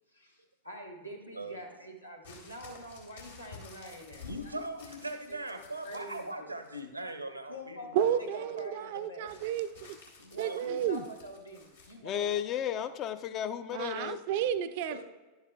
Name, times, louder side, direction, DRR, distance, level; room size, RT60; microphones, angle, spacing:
voice 1, 0.1-4.5 5.0-5.2 5.5-6.5 7.5-9.3 10.3-12.4 12.7-12.9 13.2-13.3 14.9-15.0, equal, 85° left, 0 dB, 1.3 m, -46 dB
sound 1, 2.2-6.3 6.6-7.2 9.3-12.0 12.8-12.9, left 3 dB, 70° left, 1.8 m, -52 dB
voice 2, 4.2-8.3 8.8-9.3 10.2-11.0, right 1 dB, 85° right, 8 dB, 0.8 m, -41 dB
voice 3, 7.9-10.0 10.4-11.0 13.7-15.0, right 9 dB, 50° right, 13 dB, 0.4 m, -31 dB
voice 4, 12.0-14.2, left 10 dB, 35° left, 12 dB, 0.5 m, -33 dB
11.0 x 8.0 x 2.2 m, 1.2 s
figure-of-eight pair, 90°, 0 cm